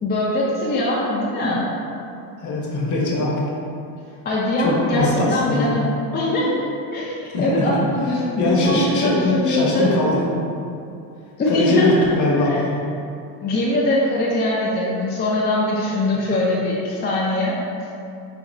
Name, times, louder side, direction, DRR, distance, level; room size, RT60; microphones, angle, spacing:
voice 1, 0.0-1.7 4.2-5.9 6.1-6.5 6.9-9.9 11.4-12.0 12.3-12.6 13.4-17.6, left 1 dB, 20° left, -6 dB, 0.4 m, -22 dB
voice 2, 2.4-3.3 4.6-5.7 7.3-7.8 8.4-10.2 11.5-12.8, left 2 dB, 40° left, -3 dB, 0.8 m, -21 dB
4.2 x 2.7 x 2.6 m, 2.6 s
cardioid pair, 105°, 45 cm